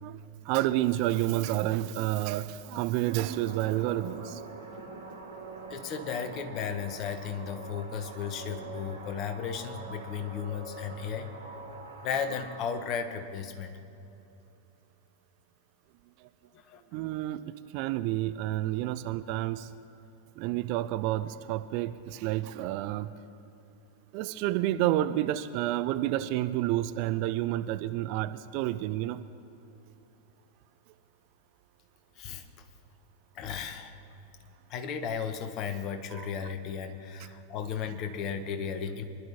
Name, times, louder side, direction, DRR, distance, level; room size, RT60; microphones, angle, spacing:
voice 1, 0.0-4.4 16.2-16.3 16.9-19.7 20.4-23.1 24.1-29.2 36.1-36.3, right 14 dB, 45° right, 12 dB, 0.5 m, -30 dB
sound 1, 2.9-12.7, right 3 dB, 80° right, 2.1 m, -44 dB
voice 2, 5.7-11.3 12.0-13.7 16.5-16.8 32.2-32.7 33.3-33.9 34.7-39.0, left 7 dB, 35° left, 8 dB, 1.1 m, -35 dB
24.5 x 11.5 x 3.0 m, 2.9 s
figure-of-eight pair, 90°, 0 cm